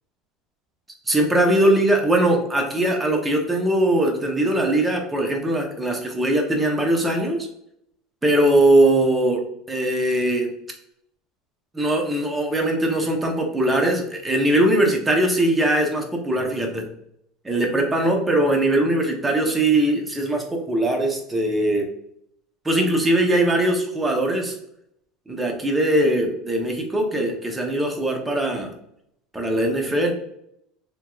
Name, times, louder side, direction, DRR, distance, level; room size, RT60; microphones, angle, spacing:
voice 1, 1.1-7.5 8.2-9.4 9.7-10.5 11.7-16.9 17.4-21.9 22.6-24.5 25.3-28.7 29.3-30.1, right 1 dB, 10° right, 2 dB, 0.7 m, -21 dB
3.4 x 3.0 x 2.3 m, 0.74 s
supercardioid pair, 135°, 0 cm